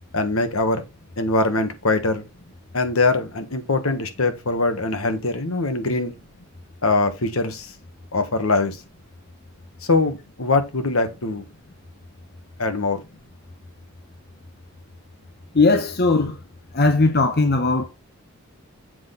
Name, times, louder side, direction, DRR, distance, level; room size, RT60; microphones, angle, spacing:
voice 1, 0.1-0.8 1.2-2.2 2.7-6.1 6.8-7.7 8.1-8.8 9.8-11.4 12.6-13.0, left 3 dB, 70° left, 1.4 m, -22 dB
voice 2, 15.5-16.3 16.7-17.9, left 3 dB, 45° left, 0.8 m, -18 dB
7.7 x 4.0 x 5.8 m
head